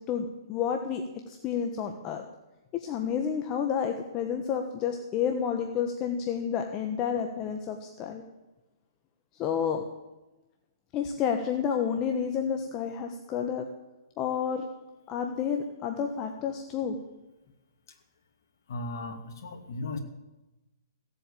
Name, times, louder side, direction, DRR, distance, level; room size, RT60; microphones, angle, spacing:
voice 1, 0.1-2.3 2.7-8.2 9.3-9.8 10.9-13.7 14.2-14.6 15.1-17.0, left 7 dB, 25° left, 4 dB, 1.3 m, -30 dB
voice 2, 18.7-20.0, left 2 dB, 60° left, 3 dB, 2.4 m, -36 dB
16.5 x 7.9 x 8.5 m, 1.0 s
hypercardioid pair, 140°, 2 cm